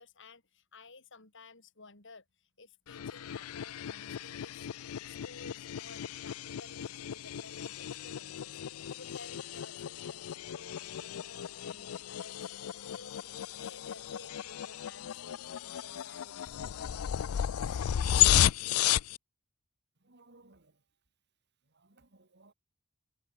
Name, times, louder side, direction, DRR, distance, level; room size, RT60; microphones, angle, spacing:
voice 1, 0.0-4.7 5.0-16.5, left 3 dB, 60° left, 5.0 m, -54 dB
sound 1, 2.9-19.2, left 11 dB, 85° left, 0.4 m, -33 dB
voice 2, 20.0-20.8 21.7-22.5, right 2 dB, 55° right, 2.9 m, -61 dB
head